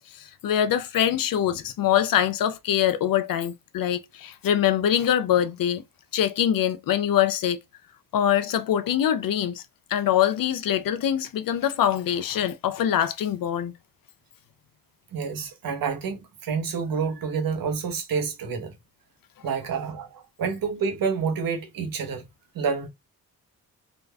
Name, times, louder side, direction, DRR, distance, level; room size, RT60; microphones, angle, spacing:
voice 1, 0.1-5.8 6.1-7.6 8.1-9.6 9.9-13.7, left 10 dB, 70° left, 0.6 m, -24 dB
voice 2, 15.1-18.8 19.4-22.2 22.5-22.9, right 5 dB, 75° right, 1.1 m, -28 dB
3.8 x 2.4 x 3.4 m
cardioid pair, 75°, 34 cm